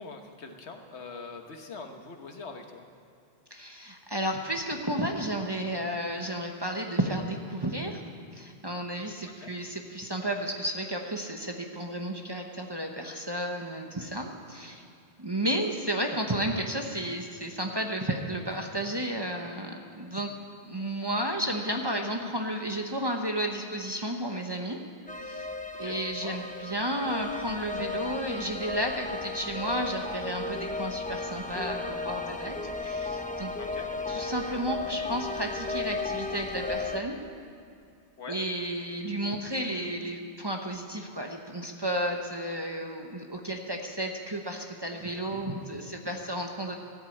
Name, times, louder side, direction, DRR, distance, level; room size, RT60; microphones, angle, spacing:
voice 1, 0.0-2.8 9.4-9.5 25.7-26.4 33.6-33.9 38.2-38.4, left 4 dB, 75° left, 4 dB, 1.5 m, -43 dB
voice 2, 3.5-8.0 8.3-14.8 15.2-20.3 20.6-24.8 25.2-25.5 25.8-33.5 34.1-37.2 38.3-46.8, right 1 dB, 25° right, 2 dB, 0.9 m, -32 dB
sound 1, 25.1-37.0, left 3 dB, 10° left, 0.6 m, -35 dB
14.5 x 8.2 x 8.6 m, 2.5 s
omnidirectional pair, 1.2 m